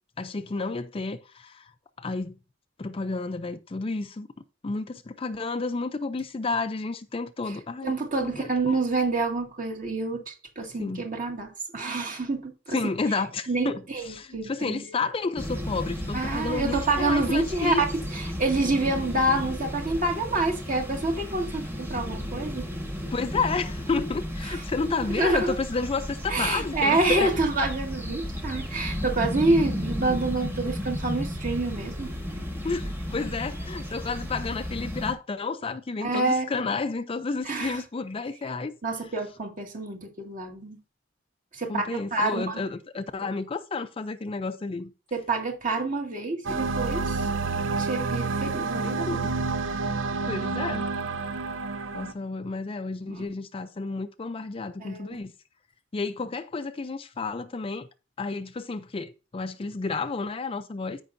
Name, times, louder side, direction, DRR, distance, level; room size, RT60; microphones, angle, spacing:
voice 1, 0.2-1.7 2.0-2.4 2.8-4.3 4.6-8.8 10.8-11.0 12.7-17.8 23.1-27.3 32.6-38.8 41.7-44.9 48.8-49.4 50.3-50.9 51.9-55.3 55.9-57.9 58.2-61.0, left 4 dB, 30° left, 0.4 m, -31 dB
voice 2, 7.8-12.8 13.5-15.0 16.1-17.7 18.1-22.7 24.4-24.6 25.0-25.5 26.3-32.1 36.0-36.5 37.4-37.8 38.8-40.8 41.5-42.6 45.1-47.3 47.8-49.3 53.1-53.2 54.8-55.2, right 2 dB, 45° right, 2.0 m, -27 dB
sound 1, 15.4-35.1, equal, 10° right, 1.4 m, -34 dB
sound 2, 46.4-52.1, right 4 dB, 75° right, 0.6 m, -29 dB
14.0 x 5.4 x 2.6 m
head